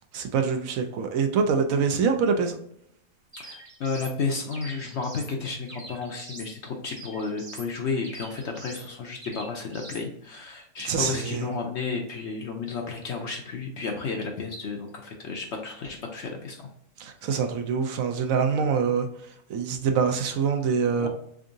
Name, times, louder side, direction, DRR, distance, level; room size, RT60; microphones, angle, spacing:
voice 1, 0.1-2.5 10.9-11.5 17.0-19.1 19.5-21.1, right 6 dB, 70° right, 5 dB, 0.9 m, -25 dB
sound 1, 3.3-4.2 4.5-5.3 5.7-6.5 6.9-7.7 8.0-8.9 9.2-10.0, right 2 dB, 30° right, 0.6 m, -44 dB
voice 2, 3.4-16.7 21.0-21.1, left 4 dB, 65° left, 2 dB, 0.7 m, -32 dB
3.6 x 3.6 x 2.6 m, 0.74 s
omnidirectional pair, 1.6 m